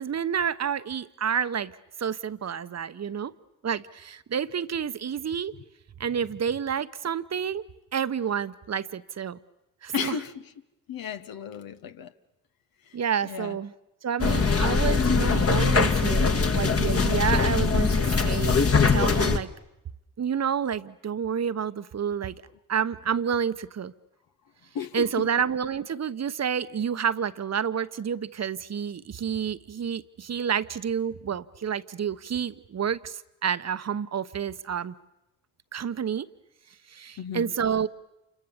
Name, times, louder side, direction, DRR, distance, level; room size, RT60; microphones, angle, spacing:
voice 1, 0.0-1.7 2.0-3.3 3.6-5.5 6.0-7.6 7.9-9.4 9.8-10.2 12.9-13.7 14.0-18.6 18.9-19.5 20.2-22.3 22.7-23.9 24.9-34.9 35.7-36.3 36.9-37.9, right 7 dB, 45° right, 1.0 m, -29 dB
voice 2, 9.9-10.5 10.9-12.1 12.9-13.0 13.2-13.6 14.6-14.7 24.7-25.3 37.2-37.5, left 7 dB, 65° left, 1.3 m, -34 dB
sound 1, 14.2-19.4, left 4 dB, 40° left, 1.8 m, -22 dB
28.5 x 25.5 x 7.2 m
hypercardioid pair, 45°, 37 cm